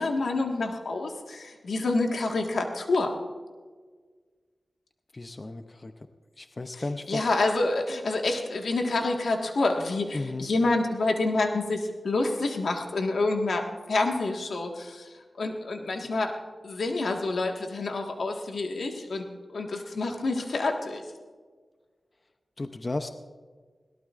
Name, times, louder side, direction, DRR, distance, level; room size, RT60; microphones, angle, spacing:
voice 1, 0.0-3.1 6.7-15.1 15.4-16.3 16.6-21.0, left 2 dB, 85° left, 2 dB, 1.7 m, -28 dB
voice 2, 5.1-5.9 6.4-7.2 10.1-10.5 22.6-23.1, left 2 dB, 35° left, 7 dB, 0.7 m, -34 dB
21.5 x 17.5 x 2.5 m, 1.5 s
wide cardioid pair, 85°, 0 cm